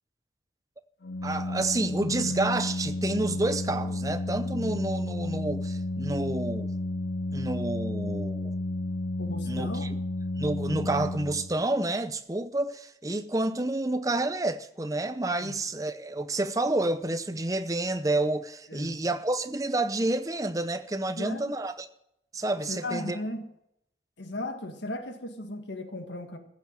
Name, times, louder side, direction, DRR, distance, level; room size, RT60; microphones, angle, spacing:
Organ, 1.0-11.8, left 2 dB, 65° left, 0.5 m, -32 dB
voice 1, 1.2-6.7 7.3-8.5 9.5-9.9 10.4-21.9 22.3-23.2, right 2 dB, 20° right, 0.7 m, -29 dB
voice 2, 9.2-9.9 15.4-15.5 18.7-19.1 21.1-21.5 22.7-23.4 24.2-26.4, left 1 dB, 85° left, 1.7 m, -36 dB
15.0 x 7.3 x 7.6 m
head